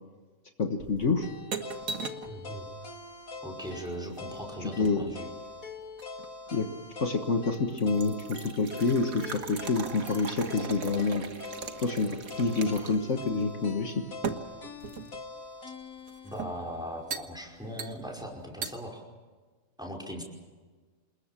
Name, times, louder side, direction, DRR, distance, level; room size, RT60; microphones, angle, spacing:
voice 1, 0.6-1.3 4.6-5.0 6.5-6.7 7.0-11.2 11.8-14.0, left 4 dB, 60° left, 5 dB, 1.8 m, -28 dB
sound 1, 0.8-2.3 3.8-5.2 6.0-6.6 7.1-7.3 7.5-13.1 13.4-13.5 14.2-15.3 16.1-16.6 17.1-17.3 17.8-18.2 18.6-18.7, right 5 dB, 85° right, 1.9 m, -39 dB
sound 2, 1.2-17.3, left 3 dB, 80° left, 2.4 m, -44 dB
voice 2, 2.2-2.7 3.4-5.3 16.2-19.0 19.8-20.2, equal, 5° right, 0 dB, 5.2 m, -39 dB
28.0 x 21.0 x 7.5 m, 1.4 s
omnidirectional pair, 1.4 m